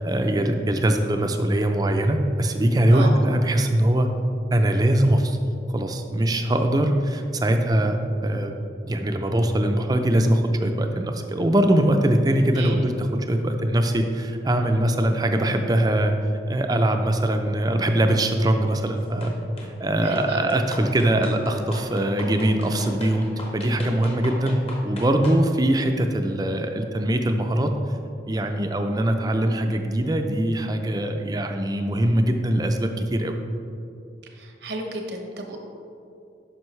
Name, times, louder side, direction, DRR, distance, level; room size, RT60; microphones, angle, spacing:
voice 1, 0.0-4.1 4.5-5.4 5.7-8.5 8.8-16.1 16.5-19.3 19.8-23.3 23.5-27.7 28.3-33.3, right 1 dB, 20° right, 5 dB, 0.5 m, -22 dB
voice 2, 12.6-12.9 20.0-20.5 34.3-35.6, right 2 dB, 70° right, 2 dB, 1.0 m, -33 dB
sound 1, 19.2-19.7 20.2-25.4, left 1 dB, 35° left, 0.9 m, -38 dB
9.2 x 6.1 x 3.2 m, 2.7 s
head